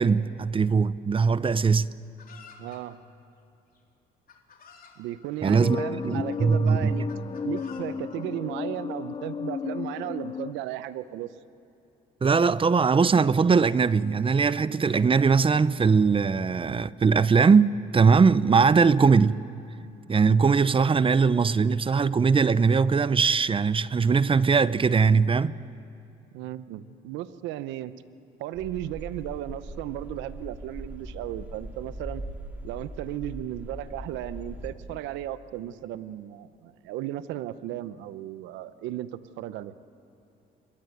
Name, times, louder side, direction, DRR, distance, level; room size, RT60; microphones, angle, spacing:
voice 1, 0.0-1.9 5.4-7.0 12.2-19.4 20.1-25.5, right 5 dB, 30° right, 0.7 m, -21 dB
Chicken rooster, 2.2-2.8 3.7-3.8 4.3-5.0 5.8-6.4 7.1-7.8, left 6 dB, 50° left, 3.6 m, -51 dB
voice 2, 2.6-3.0 5.0-7.1 7.4-11.3 26.3-27.9 28.4-32.2 32.6-39.7, right 13 dB, 90° right, 0.8 m, -35 dB
sound 1, 5.5-10.5, left 6 dB, 30° left, 0.6 m, -33 dB
sound 2, 28.5-34.7, right 1 dB, 10° right, 3.4 m, -40 dB
27.0 x 21.5 x 9.3 m
supercardioid pair, 80°, 19 cm